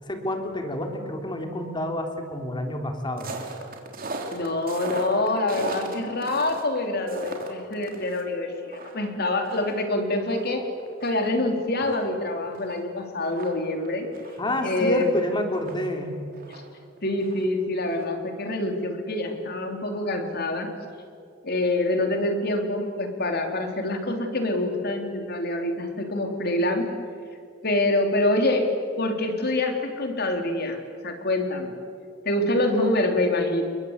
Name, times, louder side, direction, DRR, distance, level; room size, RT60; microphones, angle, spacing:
voice 1, 0.0-3.3 14.4-16.2 32.7-32.9, left 1 dB, 25° left, 4 dB, 3.4 m, -29 dB
sound 1, 3.2-8.2 8.5-11.2 11.5-11.6 11.8-15.9 16.3-17.6 17.9-18.1, right 2 dB, 50° right, 3.5 m, -38 dB
voice 2, 4.3-10.7 11.0-14.1 14.6-15.1 17.0-20.7 21.4-26.9 27.6-28.7 29.0-30.8 31.0-31.7 32.3-33.6, left 2 dB, 55° left, 4 dB, 3.7 m, -26 dB
29.5 x 22.5 x 8.3 m, 2.2 s
head